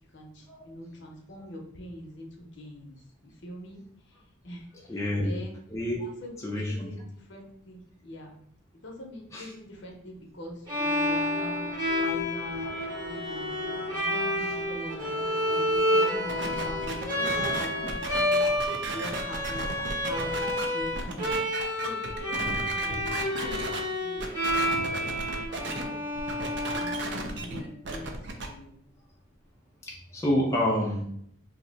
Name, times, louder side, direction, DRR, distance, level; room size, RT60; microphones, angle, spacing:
voice 1, 0.1-3.0 3.2-3.8 4.4-4.6 4.9-5.6 6.0-8.3 8.8-12.7 13.1-13.6 13.9-15.2 15.5-15.6 15.9-18.5 18.9-21.3 21.7-25.1 25.5-26.2 26.7-28.2 28.5-28.8, equal, 60° left, 1 dB, 0.6 m, -43 dB
voice 2, 4.9-5.4 5.7-6.1 6.4-6.9 9.3-9.5 14.4-14.5 22.4-22.6 25.9-26.0 29.9-31.0, left 1 dB, 15° left, -3 dB, 0.4 m, -29 dB
Bowed string instrument, 10.7-27.6, left 1 dB, 20° right, 0.9 m, -29 dB
sound 1, 11.0-17.9, equal, 80° right, 0.8 m, -39 dB
sound 2, 16.3-23.8 24.2-25.8 26.2-28.5, right 2 dB, 55° right, 0.4 m, -35 dB
2.7 x 2.1 x 3.8 m, 0.65 s
head